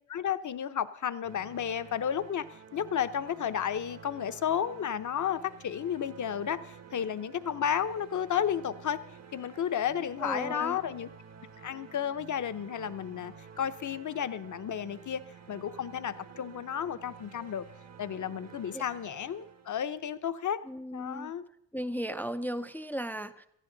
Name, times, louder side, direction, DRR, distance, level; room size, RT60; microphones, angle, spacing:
voice 1, 0.1-2.4 2.7-9.0 9.3-11.1 11.6-15.2 15.5-17.7 18.0-20.6 20.9-21.4, left 8 dB, 45° left, 12 dB, 0.8 m, -32 dB
sound 1, 1.2-20.1, right 6 dB, 40° right, 1.0 m, -51 dB
voice 2, 10.2-10.8 18.7-18.8 20.7-21.3 21.7-23.5, equal, 5° left, 10 dB, 0.5 m, -36 dB
18.5 x 14.0 x 3.9 m, 0.78 s
wide cardioid pair, 135°, 42 cm